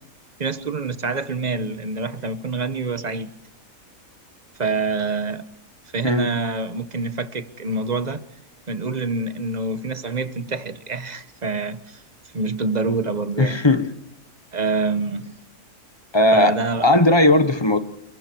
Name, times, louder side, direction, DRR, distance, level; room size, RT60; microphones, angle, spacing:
voice 1, 0.4-3.4 4.6-5.5 5.9-8.2 8.7-12.0 12.3-13.6 14.5-15.4 16.3-16.8, right 3 dB, 30° right, 1.1 m, -26 dB
voice 2, 13.4-13.9 16.1-16.6 16.8-17.8, left 1 dB, 20° left, 1.2 m, -17 dB
28.5 x 23.0 x 4.6 m
omnidirectional pair, 1.5 m